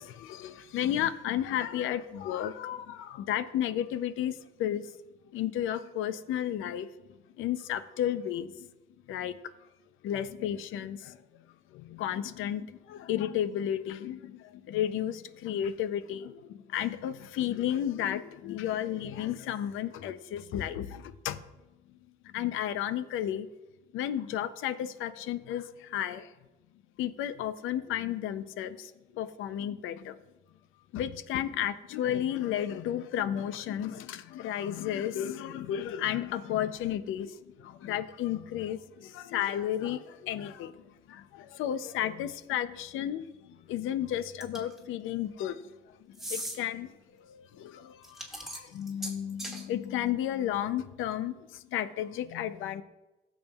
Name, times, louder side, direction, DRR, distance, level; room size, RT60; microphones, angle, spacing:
voice 1, 0.0-4.9 5.3-6.9 7.4-8.7 9.1-9.4 10.0-11.2 11.7-21.4 22.2-23.5 23.9-26.3 27.0-30.2 30.9-45.7 46.1-46.9 47.2-52.8, left 11 dB, 90° left, 13 dB, 0.6 m, -33 dB
sound 1, 44.4-44.8 46.1-46.6 48.0-49.6, right 1 dB, ahead, 2.1 m, -38 dB
16.0 x 7.2 x 2.4 m, 1.1 s
cardioid pair, 90°, 20 cm